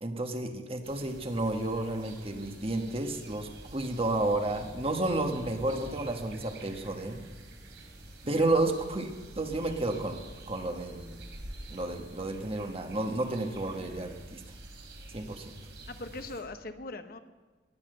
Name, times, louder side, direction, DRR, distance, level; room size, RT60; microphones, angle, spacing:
voice 1, 0.0-7.2 8.3-9.1 9.3-11.2 11.7-14.4 15.1-15.6, right 2 dB, 35° right, 5 dB, 1.3 m, -31 dB
sound 1, 0.8-16.4, right 1 dB, 85° right, 2.9 m, -48 dB
voice 2, 8.2-8.6 15.9-17.2, left 2 dB, 55° left, 8 dB, 0.9 m, -41 dB
19.5 x 7.4 x 7.8 m, 1.3 s
head